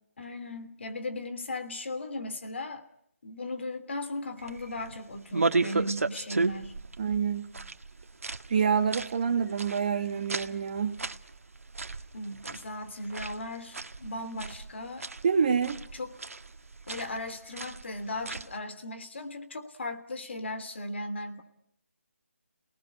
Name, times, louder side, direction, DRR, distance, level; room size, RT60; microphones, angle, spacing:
voice 1, 0.2-2.8 3.2-6.8 12.1-15.1 15.6-16.1 16.9-21.4, left 2 dB, 50° left, 8 dB, 3.2 m, -37 dB
sound 1, 4.4-18.6, right 3 dB, 75° right, 1.6 m, -35 dB
voice 2, 7.0-7.5 8.5-11.0 15.2-15.8, right 6 dB, 35° right, 5 dB, 1.3 m, -27 dB
28.5 x 19.5 x 9.9 m, 0.75 s
figure-of-eight pair, 165°, 8 cm